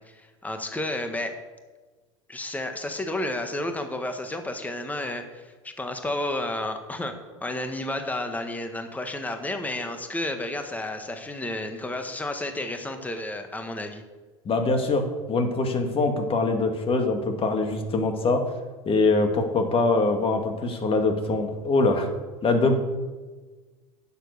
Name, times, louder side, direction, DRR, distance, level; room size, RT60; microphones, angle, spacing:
voice 1, 0.0-1.3 2.3-7.1 7.4-14.0, left 1 dB, 10° left, 6 dB, 1.4 m, -31 dB
voice 2, 14.5-18.4 18.9-22.1 22.4-22.8, left 3 dB, 35° left, 5 dB, 2.0 m, -23 dB
9.7 x 7.2 x 6.7 m, 1.3 s
hypercardioid pair, 85°, 17 cm